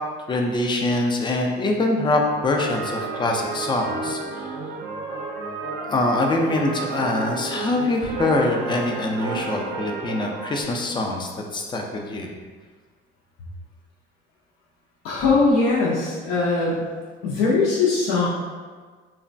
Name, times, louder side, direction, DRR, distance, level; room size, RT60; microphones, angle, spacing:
voice 1, 0.3-4.5 5.9-12.3, left 2 dB, 20° left, 1 dB, 0.3 m, -24 dB
sound 1, 2.5-10.6, right 3 dB, 60° right, 0.5 m, -31 dB
voice 2, 15.0-16.8 17.2-18.3, left 3 dB, 75° left, -6 dB, 0.6 m, -20 dB
3.0 x 2.1 x 2.5 m, 1.5 s
cardioid pair, 105°, 21 cm